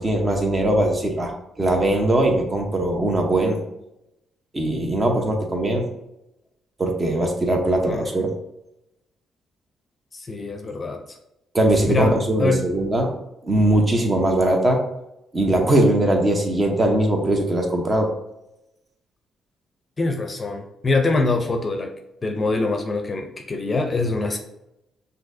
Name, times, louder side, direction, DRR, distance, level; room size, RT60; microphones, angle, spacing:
voice 1, 0.0-3.6 4.5-5.8 6.8-8.3 11.5-13.1 13.4-14.8 15.3-18.1, right 1 dB, 25° right, 2 dB, 0.9 m, -20 dB
voice 2, 7.9-8.2 10.1-11.2 11.9-12.7 20.0-21.9 22.2-24.4, left 3 dB, 30° left, 5 dB, 0.6 m, -24 dB
6.0 x 2.7 x 2.7 m, 0.88 s
cardioid pair, 90°, 0 cm